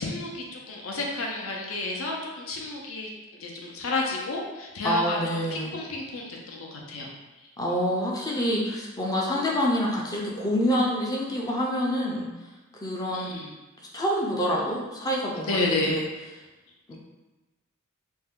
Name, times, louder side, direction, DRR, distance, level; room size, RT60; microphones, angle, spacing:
voice 1, 0.0-7.1 7.3-7.5 13.1-13.5 15.5-16.0, left 2 dB, 70° left, -1 dB, 0.6 m, -31 dB
voice 2, 4.8-5.8 7.6-12.3 12.8-13.3 13.9-16.1 16.9-17.0, equal, 20° left, -3 dB, 0.4 m, -27 dB
2.6 x 2.2 x 3.5 m, 1.1 s
head